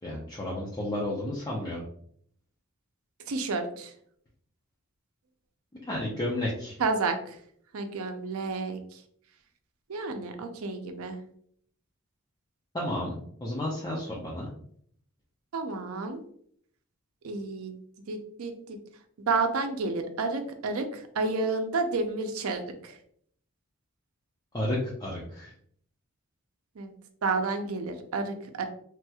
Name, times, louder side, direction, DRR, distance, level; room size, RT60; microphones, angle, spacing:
voice 1, 0.0-1.8 5.8-6.8 12.7-14.5 24.5-25.5, left 1 dB, 20° left, -5 dB, 0.5 m, -32 dB
voice 2, 3.3-3.9 6.8-7.2 7.7-8.8 9.9-11.2 15.5-16.2 17.2-17.8 18.1-18.8 19.3-22.9 26.8-26.9 27.2-28.7, right 3 dB, 75° right, 6 dB, 0.5 m, -30 dB
3.2 x 2.9 x 2.3 m, 0.64 s
head